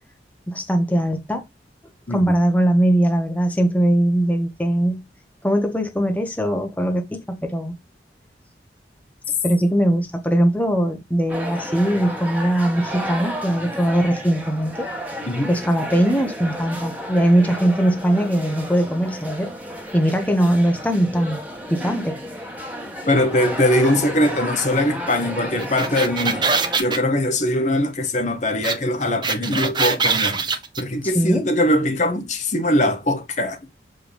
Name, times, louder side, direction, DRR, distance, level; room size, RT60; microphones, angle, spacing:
voice 1, 0.5-1.4 2.1-5.0 5.4-7.7 9.4-14.9 15.5-19.5 19.9-21.4 21.7-22.2 31.0-31.4, right 1 dB, 10° left, 1.2 m, -20 dB
sound 1, 11.3-26.8, equal, 10° right, 1.7 m, -32 dB
voice 2, 23.1-33.6, left 1 dB, 40° left, 1.2 m, -21 dB
sound 2, 25.6-27.0 28.6-28.8 29.0-30.8, right 4 dB, 25° right, 0.9 m, -22 dB
7.1 x 5.2 x 3.4 m
head